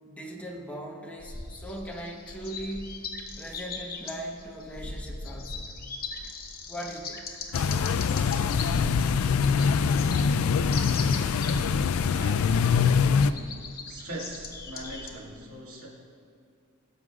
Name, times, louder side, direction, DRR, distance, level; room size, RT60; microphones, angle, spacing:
voice 1, 0.0-2.9 3.4-5.8 6.7-7.3, right 1 dB, 5° left, -2 dB, 1.1 m, -39 dB
sound 1, 1.2-15.1, left 3 dB, 45° left, 0.9 m, -39 dB
sound 2, 7.5-13.3, left 6 dB, 75° left, 0.4 m, -24 dB
voice 2, 12.1-13.1 13.9-15.9, right 1 dB, 90° right, -4 dB, 2.3 m, -41 dB
17.0 x 7.7 x 2.5 m, 2.3 s
head